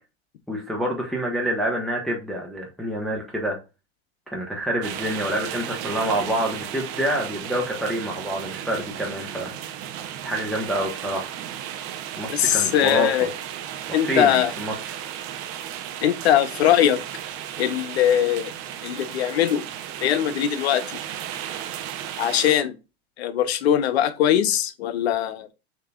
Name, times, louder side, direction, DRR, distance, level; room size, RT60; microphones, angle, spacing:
voice 1, 0.5-3.6 4.3-9.5 10.2-11.3 12.2-13.2 14.0-15.0, right 1 dB, ahead, 1.1 m, -27 dB
sound 1, 4.8-22.5, right 10 dB, 45° right, 0.7 m, -35 dB
voice 2, 12.3-13.3 13.9-14.5 16.0-17.0 17.6-18.5 18.8-19.6 20.0-21.0 22.2-22.7 23.2-25.5, left 10 dB, 80° left, 0.7 m, -21 dB
6.5 x 2.9 x 2.3 m
hypercardioid pair, 100°, 32 cm